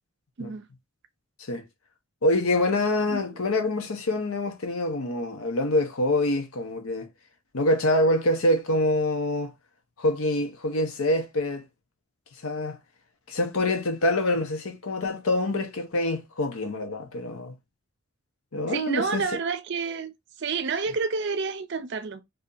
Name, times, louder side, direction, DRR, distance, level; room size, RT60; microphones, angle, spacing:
voice 1, 2.2-7.1 7.5-9.5 10.0-11.7 12.4-12.8 13.3-17.6 18.5-19.2, left 1 dB, 80° left, 0.8 m, -25 dB
voice 2, 18.7-20.1 20.4-22.2, right 5 dB, 50° right, 0.5 m, -29 dB
2.8 x 2.7 x 3.8 m
head